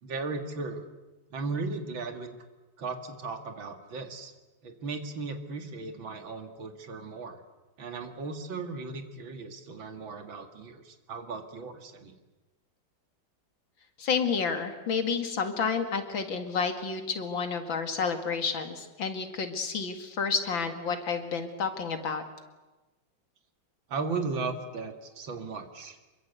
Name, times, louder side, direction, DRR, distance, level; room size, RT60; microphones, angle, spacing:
voice 1, 0.0-0.8 1.3-2.3 2.8-4.3 4.6-7.4 7.8-12.1 23.9-26.0, right 4 dB, 85° right, 6 dB, 2.8 m, -36 dB
voice 2, 14.0-22.2, left 5 dB, 80° left, 7 dB, 2.9 m, -30 dB
26.5 x 22.5 x 8.2 m, 1.2 s
omnidirectional pair, 2.1 m